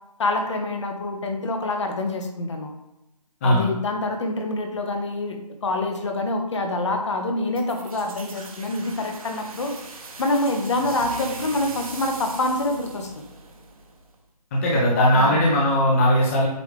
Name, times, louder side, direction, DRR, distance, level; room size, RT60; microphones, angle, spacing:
voice 1, 0.2-2.8 3.4-9.7 10.2-13.1 15.1-15.4, left 2 dB, 45° left, 4 dB, 1.0 m, -26 dB
sound 1, 7.5-14.2, right 3 dB, 55° right, 1.1 m, -40 dB
voice 2, 14.5-16.5, equal, 20° left, -3 dB, 0.8 m, -19 dB
8.0 x 3.4 x 3.4 m, 0.89 s
figure-of-eight pair, 155°, 21 cm